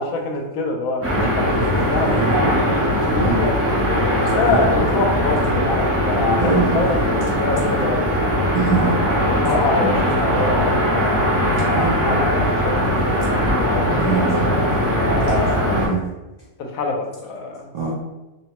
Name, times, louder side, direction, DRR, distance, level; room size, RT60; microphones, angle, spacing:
voice 1, 0.0-3.6 4.1-8.3 9.2-14.2 14.8-15.8 16.6-17.7, left 3 dB, 80° left, 2 dB, 1.0 m, -25 dB
sound 1, 1.0-15.9, equal, 15° right, 0.5 m, -20 dB
voice 2, 2.0-2.4 3.2-3.4 4.4-4.7 6.4-6.8 8.5-9.0 9.4-9.5 11.7-12.0 13.2-13.3 14.0-14.6 15.8-16.0 17.7-17.9, right 5 dB, 85° right, -5 dB, 0.3 m, -23 dB
3.0 x 2.1 x 2.9 m, 1.1 s
omnidirectional pair, 1.4 m